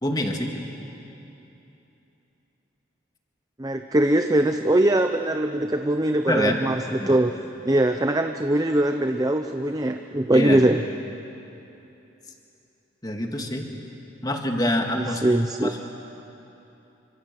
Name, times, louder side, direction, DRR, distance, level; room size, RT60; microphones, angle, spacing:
voice 1, 0.0-0.5 6.3-6.6 7.0-7.2 10.3-10.6 13.0-13.7 14.2-15.2 15.6-15.8, left 1 dB, 20° left, 2 dB, 2.1 m, -26 dB
voice 2, 3.6-7.3 7.6-10.8 14.9-15.7, right 1 dB, 20° right, 6 dB, 0.7 m, -22 dB
28.0 x 25.5 x 7.7 m, 2.9 s
head